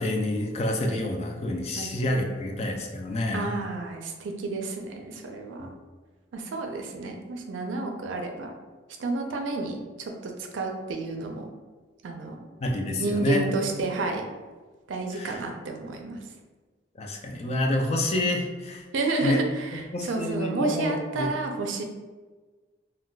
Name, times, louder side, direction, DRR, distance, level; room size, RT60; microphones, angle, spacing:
voice 1, 0.0-3.5 5.6-5.7 12.6-13.5 15.1-15.4 17.0-18.8 19.2-19.4 19.9-21.3, left 1 dB, 35° left, 2 dB, 0.3 m, -28 dB
voice 2, 3.3-5.7 6.3-8.5 9.0-11.5 12.0-12.5 13.0-14.2 14.9-16.2 18.9-21.8, right 3 dB, 90° right, 3 dB, 0.4 m, -31 dB
2.2 x 2.2 x 3.8 m, 1.3 s
head